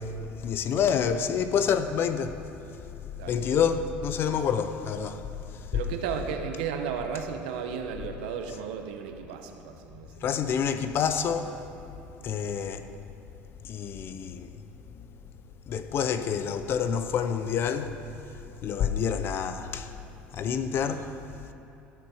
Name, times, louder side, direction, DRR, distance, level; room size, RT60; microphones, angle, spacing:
voice 1, 0.0-2.4 3.3-5.8 10.2-11.6 12.2-12.9 13.6-14.5 14.9-15.2 15.7-18.0 18.6-19.9 20.3-21.2, left 7 dB, 50° left, 0.6 m, -28 dB
voice 2, 5.7-10.4, right 7 dB, 85° right, 0.9 m, -34 dB
13.0 x 6.2 x 4.9 m
supercardioid pair, 95°, 5 cm